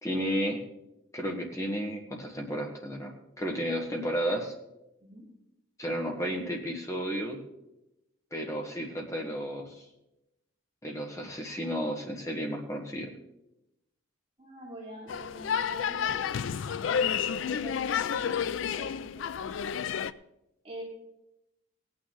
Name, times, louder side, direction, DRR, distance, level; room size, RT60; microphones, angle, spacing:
voice 1, 0.0-0.6 1.1-4.5 5.8-7.4 8.3-9.8 10.8-13.1, equal, 15° left, 1 dB, 1.6 m, -33 dB
voice 2, 14.4-19.8 20.6-20.8, right 1 dB, 30° right, -3 dB, 2.6 m, -46 dB
sound 1, 15.1-20.1, left 7 dB, 70° left, 0.4 m, -30 dB
17.5 x 9.1 x 3.9 m, 0.90 s
head